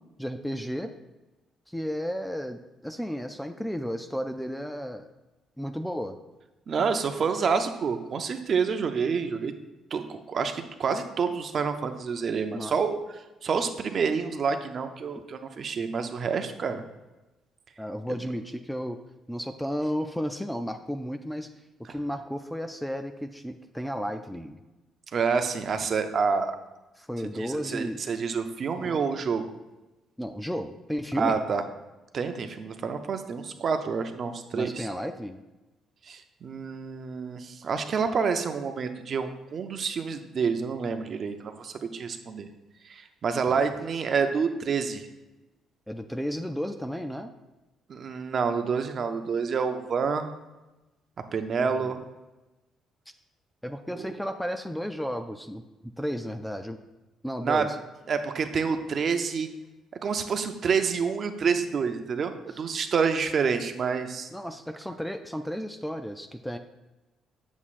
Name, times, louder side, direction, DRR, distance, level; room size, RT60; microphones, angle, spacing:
voice 1, 0.2-0.9 1.7-5.1 5.6-6.2 12.5-12.8 15.1-15.2 17.8-19.0 19.3-21.5 21.9-24.6 27.0-28.0 28.8-29.0 30.2-31.4 34.5-35.4 43.5-43.7 45.9-47.3 51.6-51.9 53.6-55.6 56.0-56.8 57.2-57.8 64.3-66.6, equal, 5° left, 7 dB, 0.4 m, -33 dB
voice 2, 6.7-9.5 9.9-13.0 13.4-16.8 25.1-26.6 27.3-29.5 31.2-31.6 32.1-34.9 36.1-42.5 42.8-45.1 47.9-50.3 51.3-52.0 54.0-54.1 57.4-57.6 58.1-59.5 60.0-64.3, right 5 dB, 45° right, 7 dB, 0.6 m, -28 dB
8.1 x 7.2 x 2.5 m, 1.1 s
cardioid pair, 120°, 0 cm